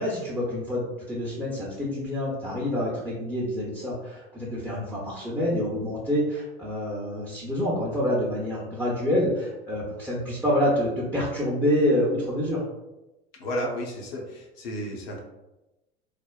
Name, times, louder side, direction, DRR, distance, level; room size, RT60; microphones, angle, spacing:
voice 1, 0.0-12.6, left 1 dB, 5° right, -7 dB, 0.7 m, -27 dB
voice 2, 13.4-15.2, equal, 65° left, -1 dB, 0.9 m, -32 dB
3.3 x 2.1 x 2.3 m, 1.0 s
figure-of-eight pair, 75°, 32 cm